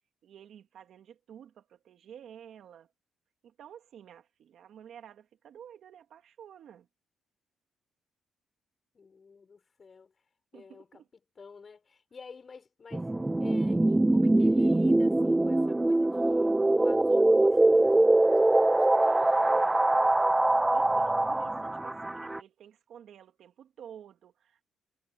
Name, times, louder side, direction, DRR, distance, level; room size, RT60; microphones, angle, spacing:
voice 1, 0.2-2.9 3.4-6.9 10.5-11.1 19.5-19.9 20.7-24.6, right 9 dB, 70° right, 2.2 m, -51 dB
voice 2, 8.9-10.1 10.5-18.9, left 5 dB, 40° left, 6.8 m, -50 dB
sound 1, 12.9-22.4, right 2 dB, 15° right, 0.3 m, -23 dB
cardioid pair, 90°, 0 cm